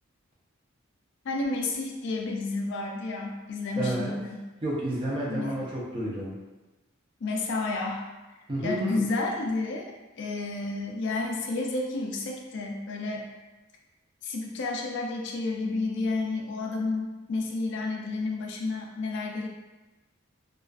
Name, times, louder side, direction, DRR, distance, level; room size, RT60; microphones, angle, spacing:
voice 1, 1.2-4.4 5.3-5.6 7.2-8.1 8.6-13.3 14.2-19.5, left 3 dB, 55° left, 1 dB, 0.4 m, -31 dB
voice 2, 3.8-4.1 4.6-6.4 8.5-9.1, right 1 dB, 25° right, -5 dB, 0.5 m, -30 dB
2.4 x 2.3 x 2.3 m, 1.1 s
head